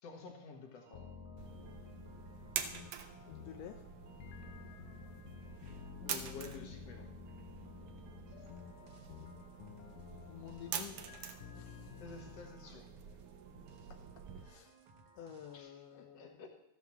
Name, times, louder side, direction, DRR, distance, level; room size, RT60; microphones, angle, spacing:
voice 1, 0.0-1.2 5.8-7.1 12.0-13.2 13.5-13.8 15.5-16.5, left 4 dB, 55° left, 3 dB, 2.6 m, -51 dB
sound 1, 0.8-15.6, right 4 dB, 60° right, 1.5 m, -62 dB
sound 2, 0.9-12.5, left 7 dB, 90° left, 2.3 m, -52 dB
sound 3, 1.4-14.4, right 8 dB, 85° right, 1.2 m, -47 dB
voice 2, 3.3-3.8 10.3-11.0 11.6-11.9 14.4-14.7 15.2-16.4, left 9 dB, 70° left, 5 dB, 1.6 m, -50 dB
14.0 x 6.3 x 7.1 m, 0.83 s
omnidirectional pair, 3.7 m